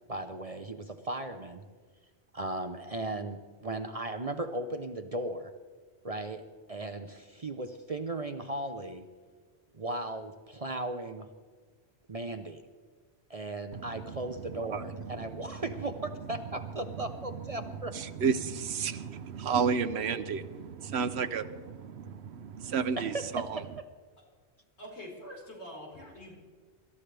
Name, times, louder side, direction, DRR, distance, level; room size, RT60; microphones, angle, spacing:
voice 1, 0.1-1.6 2.3-5.5 6.0-9.1 9.7-11.3 12.1-12.6 13.3-17.9 23.0-23.8, right 2 dB, 35° right, 8 dB, 0.8 m, -37 dB
voice 2, 13.7-14.2 14.7-14.9 17.9-21.6 22.1-23.6, right 6 dB, 75° right, 13 dB, 1.0 m, -31 dB
voice 3, 24.8-26.3, equal, 75° left, -3 dB, 5.0 m, -45 dB
25.0 x 13.5 x 3.4 m, 1.5 s
omnidirectional pair, 1.1 m